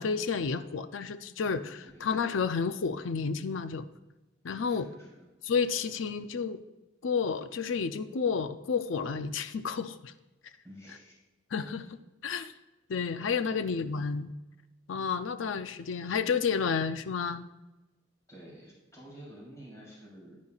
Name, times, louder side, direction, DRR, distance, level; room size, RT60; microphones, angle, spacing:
voice 1, 0.0-3.9 4.4-4.9 5.4-6.6 7.0-10.1 11.5-12.5 12.9-14.3 14.9-17.4, left 5 dB, 80° left, 11 dB, 0.5 m, -31 dB
voice 2, 4.6-5.3 10.6-11.2 13.5-13.8 18.3-20.4, equal, 15° left, -5 dB, 3.4 m, -50 dB
10.5 x 9.4 x 2.4 m, 1.0 s
head